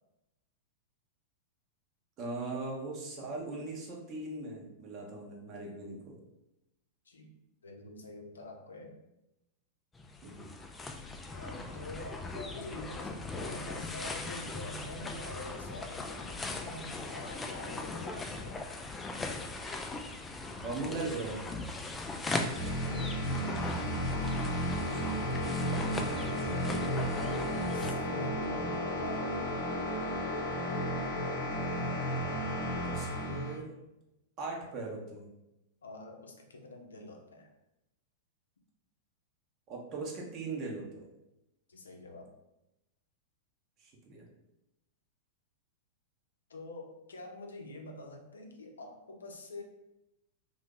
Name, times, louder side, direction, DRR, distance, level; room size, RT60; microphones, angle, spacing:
voice 1, 2.2-6.2 10.2-10.5 20.6-21.5 24.9-25.4 32.3-32.5 32.7-33.8 34.4-35.3 39.7-41.1 43.8-44.3, right 3 dB, 40° right, 0 dB, 1.0 m, -39 dB
voice 2, 7.6-9.0 11.3-18.9 22.7-23.6 26.6-29.8 35.8-37.5 41.7-42.3 46.5-49.6, left 2 dB, 80° left, 3 dB, 0.6 m, -46 dB
sound 1, 10.0-27.9, left 3 dB, 15° left, 0.4 m, -39 dB
sound 2, 22.5-33.6, equal, 50° left, 0.8 m, -33 dB
2.8 x 2.6 x 3.6 m, 0.90 s
hypercardioid pair, 100°, 0 cm